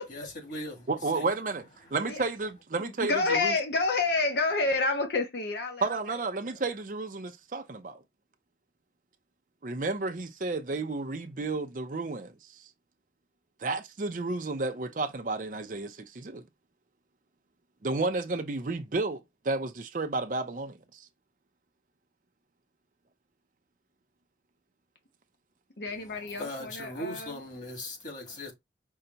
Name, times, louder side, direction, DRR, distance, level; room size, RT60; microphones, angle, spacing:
voice 1, 0.1-1.3 1.8-2.0 25.9-28.5, left 1 dB, 45° left, 2.4 m, -40 dB
voice 2, 0.9-1.6 1.9-3.5 5.8-8.0 9.6-12.3 13.6-16.4 17.8-21.0, right 3 dB, 45° right, 0.6 m, -32 dB
voice 3, 2.8-6.2 6.5-6.6 25.8-27.4, left 3 dB, 70° left, 0.8 m, -29 dB
5.6 x 2.2 x 3.9 m
head